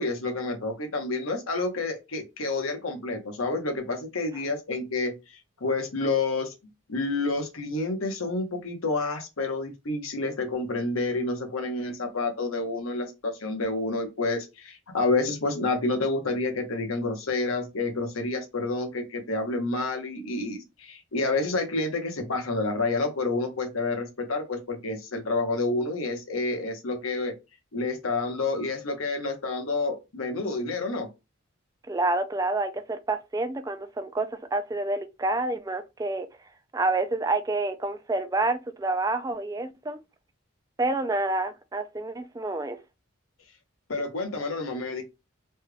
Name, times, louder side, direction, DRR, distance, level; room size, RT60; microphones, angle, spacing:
voice 1, 0.0-6.5 6.9-27.3 27.7-31.1 43.9-45.0, left 3 dB, 85° left, 1.0 m, -29 dB
voice 2, 31.9-36.3 36.7-40.0 40.8-42.8, right 2 dB, 15° right, 0.3 m, -28 dB
3.2 x 3.2 x 2.3 m
head